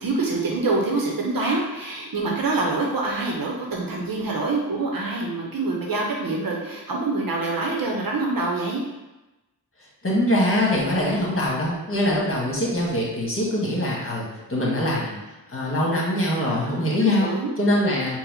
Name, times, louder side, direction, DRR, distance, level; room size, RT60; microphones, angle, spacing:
voice 1, 0.0-8.8 16.4-17.5, right 3 dB, 60° right, -1 dB, 0.8 m, -26 dB
voice 2, 10.0-15.2 15.5-17.3 17.6-18.2, left 1 dB, 35° left, -4 dB, 1.5 m, -23 dB
4.1 x 2.2 x 4.1 m, 1.0 s
cardioid pair, 65°, 40 cm